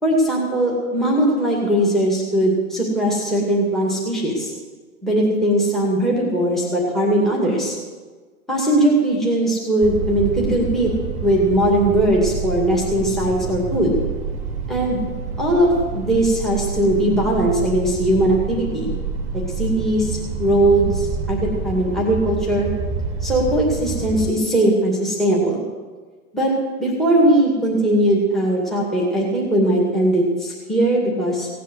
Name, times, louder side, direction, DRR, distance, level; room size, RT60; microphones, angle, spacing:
voice 1, 0.0-4.5 5.0-7.8 8.5-10.9 11.2-13.9 14.7-15.0 15.4-18.9 19.3-22.7 23.2-25.6 26.3-26.5 26.8-31.5, right 1 dB, ahead, -2 dB, 2.2 m, -19 dB
sound 1, 9.8-24.3, right 4 dB, 15° right, 1.8 m, -28 dB
17.0 x 8.4 x 7.9 m, 1.4 s
hypercardioid pair, 155°, 45 cm